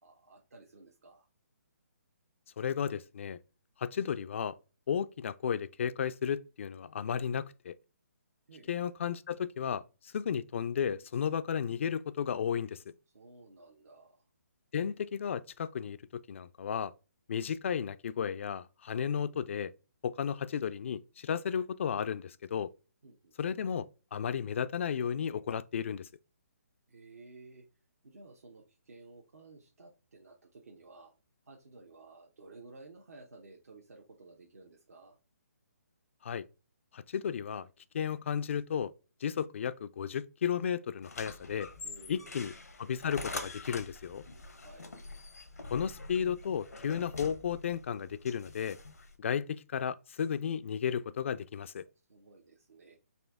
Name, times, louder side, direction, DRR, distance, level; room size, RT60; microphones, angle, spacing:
voice 1, 0.0-1.3 8.5-8.7 13.1-14.2 23.0-23.4 26.9-27.7 28.0-31.1 31.5-35.2 41.8-42.5 44.6-44.9 51.8-53.0, right 3 dB, 75° right, 1.0 m, -54 dB
voice 2, 2.6-3.4 3.8-4.6 4.9-7.8 8.7-12.8 14.7-16.9 17.3-19.7 20.0-22.7 23.4-26.1 36.2-36.4 36.9-37.7 37.9-38.9 39.2-41.7 42.1-42.5 42.8-44.2 45.7-48.8 49.2-51.8, left 8 dB, 55° left, 0.3 m, -34 dB
sound 1, 41.0-49.1, left 3 dB, 90° left, 0.9 m, -45 dB
4.2 x 2.6 x 3.5 m
hypercardioid pair, 145°, 8 cm